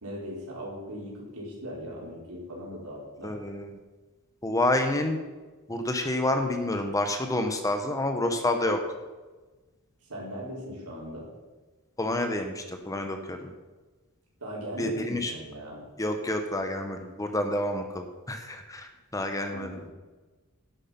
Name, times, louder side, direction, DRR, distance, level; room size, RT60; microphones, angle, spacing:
voice 1, 0.0-3.3 10.1-11.3 14.4-15.8 19.5-19.9, equal, 80° right, -4 dB, 4.5 m, -39 dB
voice 2, 3.2-3.8 4.4-5.2 5.7-8.8 12.0-13.4 14.8-15.3 16.0-19.8, left 1 dB, 15° left, 5 dB, 1.0 m, -28 dB
11.0 x 8.2 x 5.9 m, 1.2 s
head